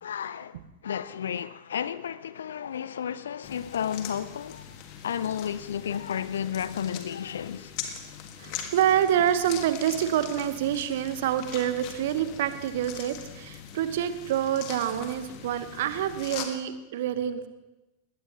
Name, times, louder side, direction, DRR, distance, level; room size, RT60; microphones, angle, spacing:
voice 1, 0.0-4.8 5.0-7.7, left 8 dB, 65° left, 0.4 m, -32 dB
sound 1, 3.4-16.5, left 9 dB, 45° left, 1.7 m, -41 dB
voice 2, 8.4-17.5, right 10 dB, 55° right, 1.1 m, -27 dB
20.5 x 17.5 x 3.0 m
figure-of-eight pair, 90°, 0 cm